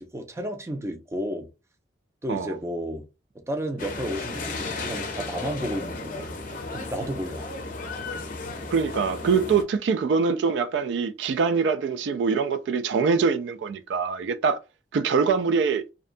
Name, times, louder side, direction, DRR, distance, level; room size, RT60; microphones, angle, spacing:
voice 1, 0.0-1.5 2.2-3.0 3.5-6.3 6.7-7.5, equal, 15° right, 0.4 m, -32 dB
sound 1, 3.8-9.6, left 3 dB, 50° left, 0.5 m, -34 dB
voice 2, 8.7-14.6 14.9-15.8, right 5 dB, 85° right, 0.3 m, -24 dB
2.6 x 2.1 x 2.5 m
head